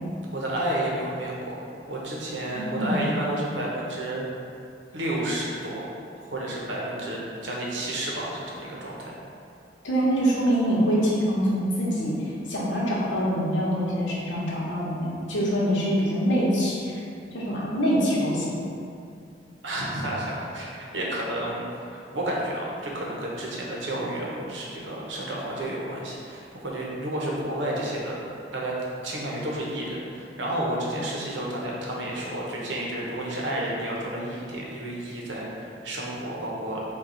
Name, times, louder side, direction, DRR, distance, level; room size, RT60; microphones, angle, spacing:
voice 1, 0.3-1.6 1.9-4.2 4.9-5.9 6.3-9.1 19.6-21.6 21.9-28.2 28.5-28.7 29.0-36.8, right 1 dB, 85° right, -4 dB, 0.8 m, -31 dB
voice 2, 2.5-3.1 9.8-17.0 17.3-18.4, equal, 90° left, -6 dB, 1.0 m, -25 dB
4.5 x 2.3 x 3.8 m, 2.5 s
head